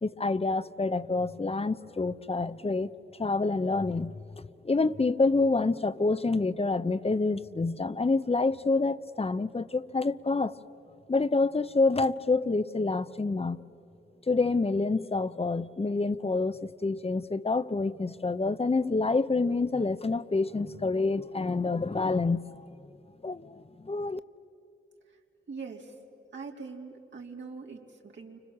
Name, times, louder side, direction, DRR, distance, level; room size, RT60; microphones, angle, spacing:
voice 1, 0.0-2.9 3.2-10.5 11.1-13.6 14.3-22.6 23.2-24.2, left 3 dB, 30° left, 15 dB, 0.9 m, -27 dB
voice 2, 25.5-25.9 26.3-28.4, right 4 dB, 70° right, 0 dB, 3.4 m, -42 dB
30.0 x 25.5 x 7.4 m, 2.9 s
cardioid pair, 55°, 20 cm